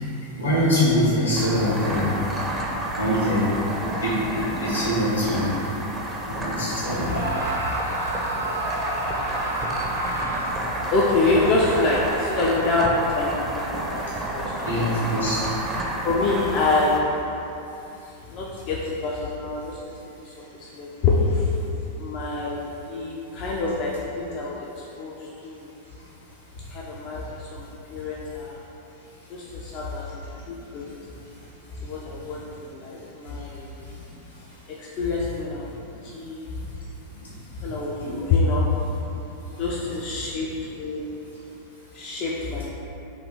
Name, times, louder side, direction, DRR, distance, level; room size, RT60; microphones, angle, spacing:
voice 1, 0.4-2.2 3.0-3.5 4.0-5.4 6.3-7.1 14.6-15.4 38.0-38.1, equal, 80° left, -8 dB, 1.3 m, -23 dB
sound 1, 1.3-17.0, right 1 dB, 15° right, 0.5 m, -30 dB
Screaming, 7.1-10.9, right 1 dB, 75° right, 0.4 m, -30 dB
voice 2, 10.9-14.0 14.3-14.7 16.0-17.3 18.3-19.8 20.2-21.5 22.0-25.7 26.7-28.6 29.3-30.2 30.5-30.9 31.8-33.7 34.7-36.5 37.6-38.7 39.0-39.1 39.6-41.1 41.9-42.7, left 3 dB, 40° left, -4 dB, 0.4 m, -26 dB
3.1 x 2.9 x 4.0 m, 2.9 s
figure-of-eight pair, 90°, 0 cm